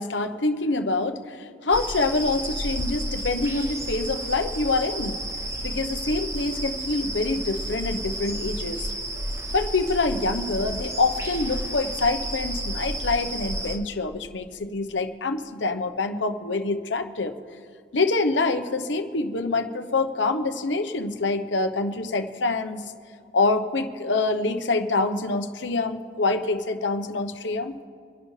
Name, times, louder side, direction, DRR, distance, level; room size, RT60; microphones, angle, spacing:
voice 1, 0.0-5.2 5.6-8.9 9.5-17.3 17.9-22.8 23.3-27.8, left 3 dB, 90° left, 8 dB, 1.0 m, -26 dB
sound 1, 1.7-13.8, right 1 dB, 15° right, 0.9 m, -31 dB
25.5 x 11.0 x 3.3 m, 2.4 s
head